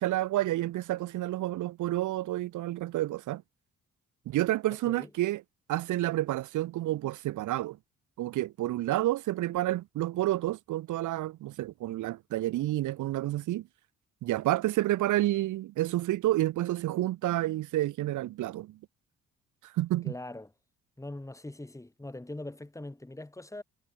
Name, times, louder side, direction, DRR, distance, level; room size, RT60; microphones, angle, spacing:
voice 1, 0.0-3.4 4.3-5.4 5.7-7.8 8.2-13.7 14.2-18.8 19.6-20.1, right 15 dB, 80° right, 1.0 m, -29 dB
voice 2, 20.0-20.5 21.0-23.6, left 1 dB, 10° left, 5.2 m, -42 dB
cardioid pair, 90°, 30 cm